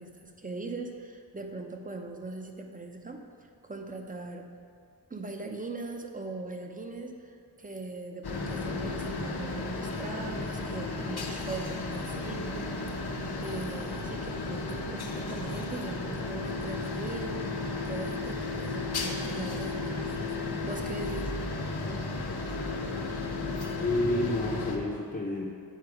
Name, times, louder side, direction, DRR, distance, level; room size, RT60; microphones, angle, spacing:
voice 1, 0.0-3.2 3.6-4.5 5.1-17.5 17.8-21.3, right 2 dB, 20° right, 4 dB, 0.6 m, -40 dB
sound 1, 8.2-24.8, left 3 dB, 60° left, 0.8 m, -34 dB
voice 2, 23.8-25.4, left 1 dB, 20° left, -5 dB, 0.7 m, -29 dB
8.3 x 4.3 x 4.8 m, 2.2 s
wide cardioid pair, 80°, 44 cm